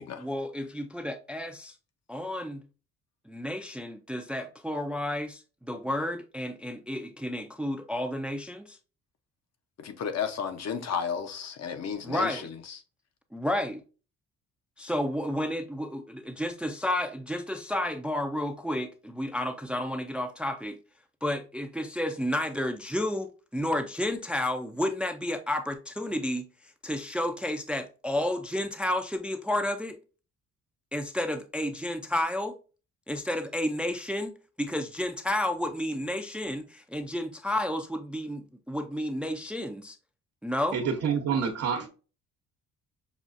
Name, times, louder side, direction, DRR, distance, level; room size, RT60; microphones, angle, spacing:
voice 1, 0.0-1.7 2.1-2.7 3.3-8.8 12.0-12.4 13.3-13.8 14.8-20.8 21.2-26.5 26.8-30.0 30.9-32.6 33.1-40.0 40.4-40.8 41.3-41.4, left 1 dB, 5° right, 0.4 m, -31 dB
voice 2, 9.8-12.8, left 7 dB, 60° left, 0.9 m, -33 dB
voice 3, 40.7-41.9, right 7 dB, 80° right, 1.0 m, -27 dB
5.9 x 2.4 x 2.5 m
cardioid pair, 90°, 30 cm